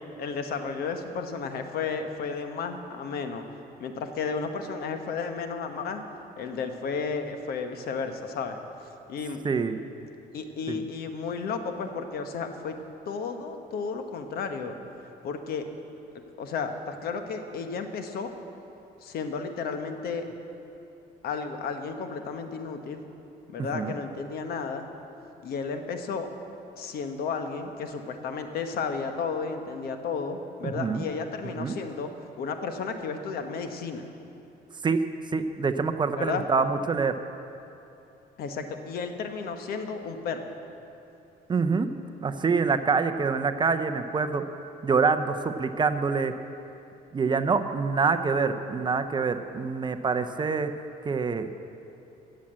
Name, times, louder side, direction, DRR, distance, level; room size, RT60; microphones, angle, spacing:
voice 1, 0.0-3.4 3.8-6.0 6.4-8.6 9.1-9.4 10.3-12.8 13.1-14.8 15.2-15.7 16.1-18.3 19.0-20.2 21.2-23.1 23.5-24.9 25.4-26.3 26.8-32.1 32.4-34.1 36.2-36.4 38.4-40.4, left 5 dB, 65° left, 7 dB, 1.2 m, -33 dB
voice 2, 9.4-9.8 10.7-10.8 23.7-23.9 30.6-31.0 31.6-31.7 34.8-35.0 35.3-37.2 41.5-41.9 42.2-44.4 44.8-46.3 47.1-50.7 51.0-51.5, right 5 dB, 25° right, 8 dB, 0.6 m, -26 dB
14.5 x 7.5 x 7.6 m, 2.8 s
cardioid pair, 110°, 17 cm